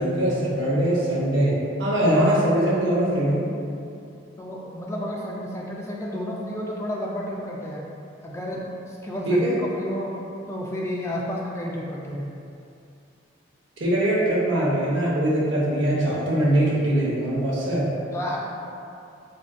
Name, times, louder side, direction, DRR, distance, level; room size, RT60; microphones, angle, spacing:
voice 1, 0.0-1.5 1.8-3.5 9.3-9.5 13.8-17.8, right 1 dB, 75° right, -6 dB, 0.8 m, -22 dB
voice 2, 4.4-7.9 8.2-10.1 10.5-12.4 18.1-18.5, equal, 15° left, -3 dB, 0.3 m, -31 dB
3.6 x 2.4 x 2.2 m, 2.6 s
head